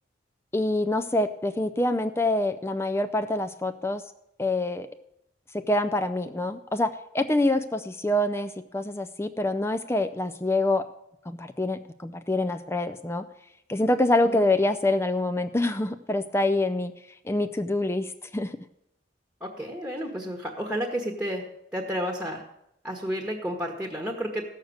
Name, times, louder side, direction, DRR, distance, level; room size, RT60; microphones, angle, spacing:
voice 1, 0.5-4.0 4.4-4.9 5.5-10.9 11.4-13.2 13.7-16.9 17.3-18.5, left 2 dB, 15° left, 9 dB, 0.4 m, -26 dB
voice 2, 19.4-21.4 21.7-22.4 22.8-24.4, equal, 5° right, 3 dB, 1.3 m, -31 dB
14.5 x 6.6 x 7.9 m, 0.80 s
head